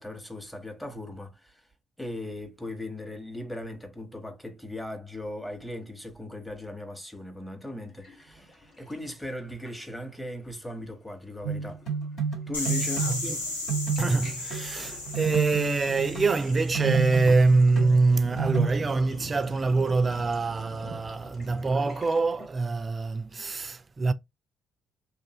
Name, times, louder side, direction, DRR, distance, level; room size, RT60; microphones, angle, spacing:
voice 1, 0.0-1.7 2.0-11.8 12.5-13.1, left 1 dB, 10° left, 1.1 m, -38 dB
Sink (filling or washing), 8.0-10.2 10.5-10.8 11.1-22.5, equal, 40° left, 1.3 m, -47 dB
sound 1, 11.4-13.3 13.7-18.7, right 6 dB, 60° left, 1.5 m, -30 dB
sound 2, 12.5-17.3, left 2 dB, 90° left, 0.6 m, -35 dB
voice 2, 12.9-13.4 14.0-24.1, right 3 dB, 30° right, 0.4 m, -25 dB
2.6 x 2.5 x 2.9 m
figure-of-eight pair, 45°, 0 cm